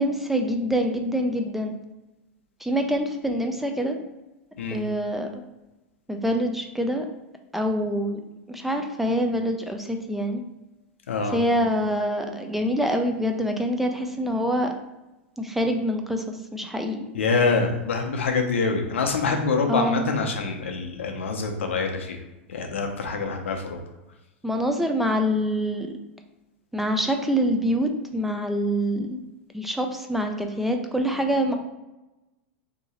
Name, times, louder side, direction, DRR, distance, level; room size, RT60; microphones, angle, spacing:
voice 1, 0.0-1.7 2.6-4.0 4.7-5.4 6.1-7.1 7.5-8.2 8.5-10.4 11.3-14.7 15.4-17.0 19.7-20.1 24.4-25.9 26.7-29.2 29.5-31.5, equal, 5° right, 4 dB, 0.4 m, -25 dB
voice 2, 11.1-11.4 17.1-22.2 22.5-23.8, left 4 dB, 90° left, 4 dB, 0.6 m, -25 dB
2.8 x 2.7 x 4.0 m, 1.0 s
hypercardioid pair, 110°, 7 cm